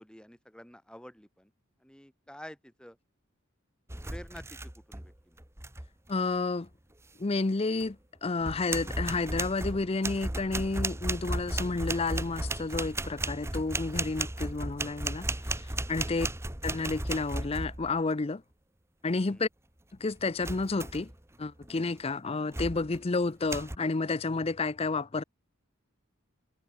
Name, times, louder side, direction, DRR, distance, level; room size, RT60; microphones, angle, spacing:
voice 1, 0.0-1.5 1.8-3.0 4.1-5.4 16.0-16.3 19.3-19.4, equal, 5° left, 4.0 m, -49 dB
sound 1, 3.9-5.1 5.4-5.9 7.8-7.9 8.4-18.0 20.4-21.1 21.6-21.9 22.5-23.0 23.5-23.8, right 2 dB, 15° right, 1.4 m, -35 dB
voice 2, 6.1-6.7 7.2-15.3 15.9-16.3 16.6-18.4 19.0-19.5 20.0-21.1 21.4-25.2, left 3 dB, 30° left, 0.6 m, -30 dB
head